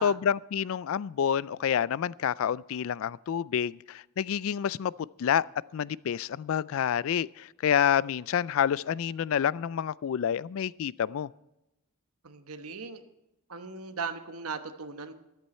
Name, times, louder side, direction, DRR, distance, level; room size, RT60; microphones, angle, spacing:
voice 1, 0.0-4.9 5.2-5.4 5.7-11.3, left 8 dB, 65° left, 0.3 m, -28 dB
voice 2, 12.2-13.0 13.5-15.1, right 5 dB, 75° right, 1.1 m, -38 dB
13.5 x 11.5 x 4.3 m
head